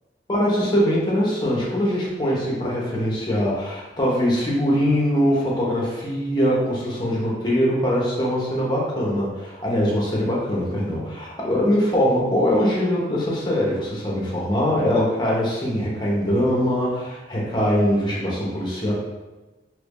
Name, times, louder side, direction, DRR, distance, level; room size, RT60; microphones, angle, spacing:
voice 1, 0.3-18.9, equal, 25° left, -4 dB, 0.8 m, -22 dB
3.0 x 2.5 x 3.5 m, 1.1 s
head